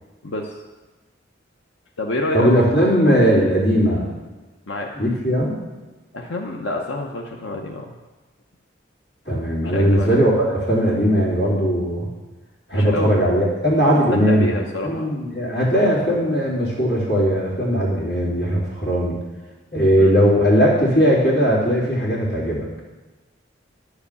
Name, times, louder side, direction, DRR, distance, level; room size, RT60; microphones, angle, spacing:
voice 1, 0.2-0.6 2.0-2.5 4.7-4.9 6.1-7.9 9.7-10.1 12.7-13.2 14.1-15.1 20.0-20.1, left 1 dB, 80° left, 0 dB, 0.8 m, -27 dB
voice 2, 2.3-4.1 4.9-5.5 9.3-12.1 12.7-14.5 14.8-19.2 19.7-22.7, equal, 60° left, -6 dB, 3.3 m, -18 dB
10.5 x 5.0 x 6.9 m, 1.2 s
head